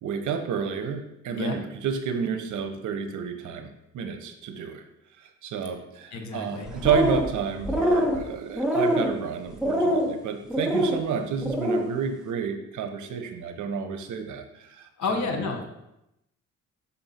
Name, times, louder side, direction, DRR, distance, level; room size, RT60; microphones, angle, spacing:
voice 1, 0.0-3.7 3.9-4.8 5.4-15.3, right 6 dB, 75° right, 6 dB, 1.0 m, -30 dB
voice 2, 6.1-6.7 15.0-15.6, left 4 dB, 65° left, 4 dB, 1.4 m, -30 dB
sound 1, 6.7-7.3 7.6-8.2 8.6-9.1 9.6-10.1 10.5-11.0 11.4-11.8, equal, ahead, 1.4 m, -24 dB
5.8 x 4.3 x 5.8 m, 0.85 s
cardioid pair, 90°, 30 cm